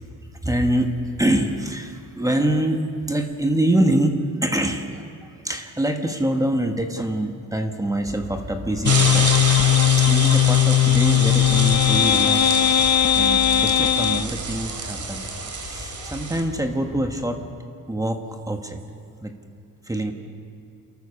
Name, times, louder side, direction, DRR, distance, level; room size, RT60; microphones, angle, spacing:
voice 1, 0.4-12.9 13.1-17.4 17.9-18.8 19.2-19.3 19.8-20.1, right 1 dB, 10° right, 5 dB, 1.2 m, -25 dB
sound 1, 8.0-17.2, left 1 dB, 15° left, 2.8 m, -39 dB
sound 2, 8.8-16.4, right 4 dB, 55° right, 2.7 m, -28 dB
sound 3, 8.9-14.3, left 11 dB, 50° left, 0.6 m, -18 dB
28.5 x 14.0 x 6.7 m, 2.3 s
wide cardioid pair, 150°, 35 cm